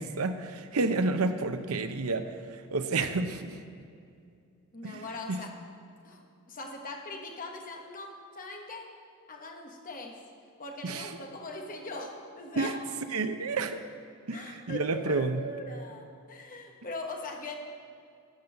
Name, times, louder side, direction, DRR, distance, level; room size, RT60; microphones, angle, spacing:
voice 1, 0.0-2.2 2.7-3.6 4.8-5.4 10.8-11.1 12.6-12.7 13.1-13.8 14.3-15.4, right 3 dB, 70° right, 9 dB, 0.7 m, -30 dB
voice 2, 4.7-5.6 6.0-8.9 9.3-10.2 10.6-12.8 14.3-17.5, left 2 dB, 40° left, 2 dB, 1.3 m, -41 dB
13.0 x 5.4 x 7.8 m, 2.4 s
head